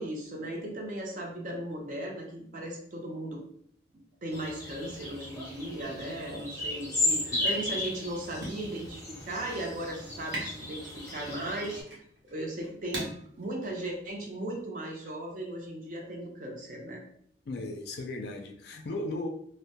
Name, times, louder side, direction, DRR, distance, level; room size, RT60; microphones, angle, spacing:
voice 1, 0.0-3.4 4.2-11.8 12.3-13.1 13.4-17.0, right 1 dB, 45° right, 0 dB, 0.5 m, -37 dB
sound 1, 4.3-11.8, left 2 dB, 20° left, 0.6 m, -35 dB
sound 2, 5.8-14.6, right 1 dB, 80° right, 0.8 m, -45 dB
voice 2, 17.4-19.3, left 2 dB, 55° left, 3 dB, 0.4 m, -36 dB
2.1 x 2.1 x 2.7 m, 0.66 s
head